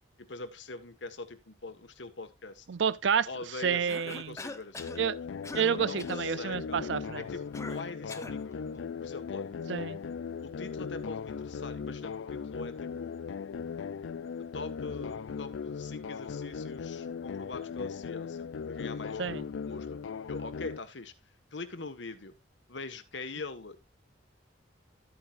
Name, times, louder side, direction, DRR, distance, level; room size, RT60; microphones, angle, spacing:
voice 1, 0.2-2.7 3.3-5.1 5.7-6.8 7.1-9.6 10.4-13.2 14.5-19.3 19.7-20.0 20.3-21.1 21.5-22.3 22.7-23.8, left 3 dB, 70° left, 1.5 m, -43 dB
voice 2, 2.7-4.3 5.0-5.2 5.5-7.2 9.7-10.0 19.2-19.4, right 7 dB, 70° right, 0.5 m, -29 dB
Cough, 3.9-5.0 5.4-5.7 6.0-6.3 7.5-8.4, left 2 dB, 15° left, 0.8 m, -42 dB
sound 1, 4.8-20.8, left 6 dB, 90° left, 0.4 m, -38 dB
12.5 x 9.0 x 2.5 m
head